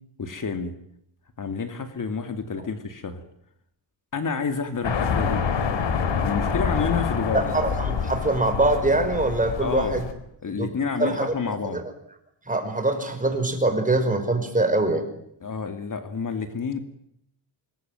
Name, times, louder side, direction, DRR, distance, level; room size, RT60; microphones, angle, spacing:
voice 1, 0.2-0.7 1.4-3.2 4.1-5.4 6.2-7.5 9.6-10.0 10.4-11.8 15.4-16.8, left 5 dB, 45° left, 8 dB, 2.7 m, -29 dB
sound 1, 4.8-10.1, left 6 dB, 80° left, 4.0 m, -26 dB
voice 2, 7.3-10.0 10.6-10.7 11.0-11.3 11.6-11.8 12.5-15.1, right 2 dB, 20° right, 7 dB, 5.3 m, -23 dB
26.5 x 21.5 x 9.3 m, 0.72 s
wide cardioid pair, 125°, 44 cm